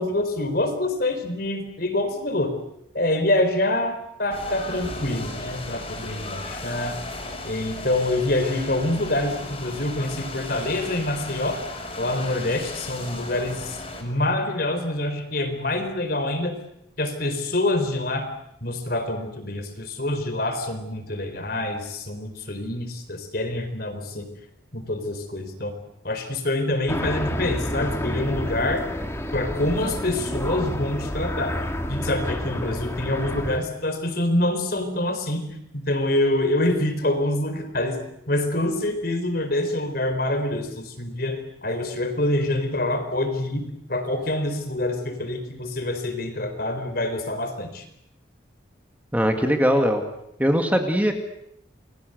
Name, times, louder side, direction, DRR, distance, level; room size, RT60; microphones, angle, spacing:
voice 1, 0.0-2.6 2.9-7.0 7.4-11.6 12.0-16.6 17.0-18.3 18.6-24.3 24.7-25.7 26.0-28.9 29.3-35.5 35.7-38.0 38.3-47.9, left 1 dB, 50° left, 8 dB, 4.4 m, -26 dB
sound 1, 4.3-14.0, left 2 dB, 30° left, 5.9 m, -36 dB
sound 2, 26.9-33.6, equal, 15° left, 2.2 m, -29 dB
voice 2, 49.1-50.0 50.4-51.1, equal, 10° right, 4 dB, 2.3 m, -20 dB
29.5 x 22.5 x 8.1 m, 0.77 s
head